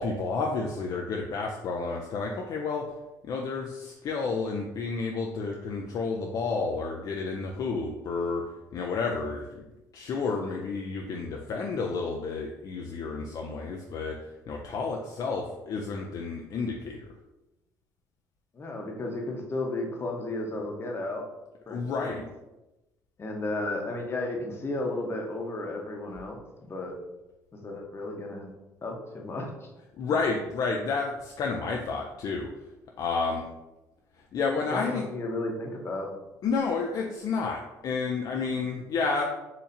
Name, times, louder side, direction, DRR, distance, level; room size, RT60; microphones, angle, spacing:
voice 1, 0.0-2.8 3.2-8.4 8.7-9.7 9.9-14.2 14.5-17.0 21.7-22.2 30.0-32.5 33.0-33.4 34.3-35.0 36.4-39.2, left 4 dB, 55° left, 0 dB, 0.4 m, -30 dB
voice 2, 18.5-21.2 21.7-22.2 23.2-26.4 26.7-26.9 27.5-28.5 28.8-29.7 30.0-30.1 34.7-36.1, left 2 dB, 35° left, 1 dB, 0.9 m, -33 dB
4.2 x 2.7 x 2.6 m, 1.0 s
supercardioid pair, 80°, 7 cm